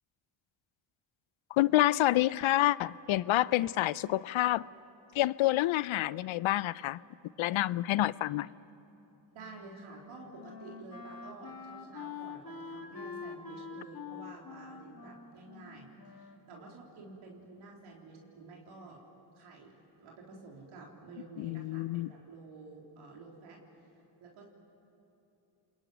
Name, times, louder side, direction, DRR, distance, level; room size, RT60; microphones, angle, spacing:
voice 1, 1.5-4.6 5.1-7.0 7.4-8.5 21.4-22.1, left 16 dB, 75° left, 20 dB, 0.6 m, -28 dB
Wind instrument woodwind instrument, 9.3-17.1, left 5 dB, 45° left, 2.4 m, -46 dB
voice 2, 9.3-19.0 19.4-23.6 24.2-24.4, right 3 dB, 85° right, -1 dB, 3.7 m, -50 dB
29.5 x 21.5 x 9.2 m, 2.9 s
cardioid pair, 65°, 48 cm